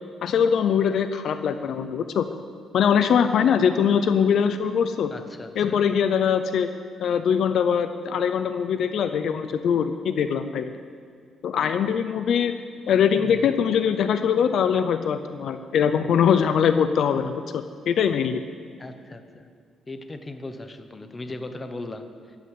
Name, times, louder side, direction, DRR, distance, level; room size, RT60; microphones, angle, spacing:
voice 1, 0.2-2.3 2.7-5.1 5.6-6.7 7.0-10.7 11.4-12.5 12.9-18.4, left 7 dB, 55° left, 10 dB, 0.6 m, -22 dB
voice 2, 5.1-5.8 13.2-13.5 18.8-19.4 19.9-22.4, left 2 dB, 15° left, 8 dB, 0.9 m, -38 dB
13.5 x 9.7 x 8.1 m, 2.1 s
cardioid pair, 165°, 0 cm